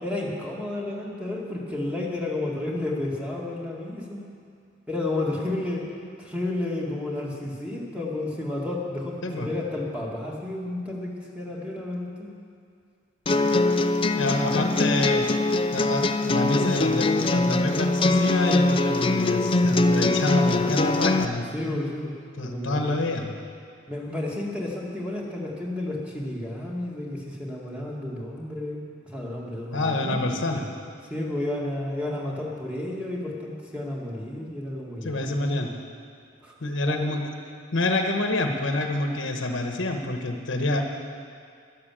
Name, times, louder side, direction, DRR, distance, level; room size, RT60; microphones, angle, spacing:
voice 1, 0.0-4.3 4.9-5.9 6.2-12.3 21.5-23.0 23.9-30.2 31.1-35.6 36.4-36.5 36.9-37.0, left 1 dB, 5° right, -3 dB, 1.9 m, -31 dB
sound 1, 13.3-21.2, left 2 dB, 25° left, 0.5 m, -22 dB
voice 2, 14.2-15.2 15.7-21.8 22.4-23.3 29.7-30.7 35.0-35.7 36.6-37.3 37.7-40.8, left 2 dB, 65° left, 3 dB, 1.2 m, -27 dB
12.0 x 11.5 x 7.5 m, 2.2 s
head